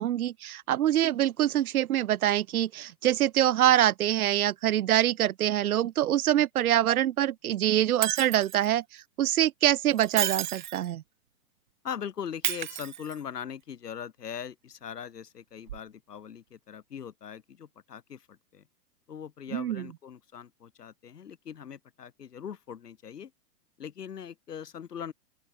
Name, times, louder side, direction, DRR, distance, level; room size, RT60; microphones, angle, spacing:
voice 1, 0.0-11.0 19.5-19.9, right 12 dB, 65° right, 1.3 m, -25 dB
Shatter, 8.0-8.7 9.9-10.9 12.4-13.4 15.7-15.8, right 12 dB, 35° right, 0.4 m, -32 dB
voice 2, 11.8-18.6 19.1-23.3 23.8-25.1, left 8 dB, 90° left, 2.8 m, -41 dB
open air
hypercardioid pair, 145°, 46 cm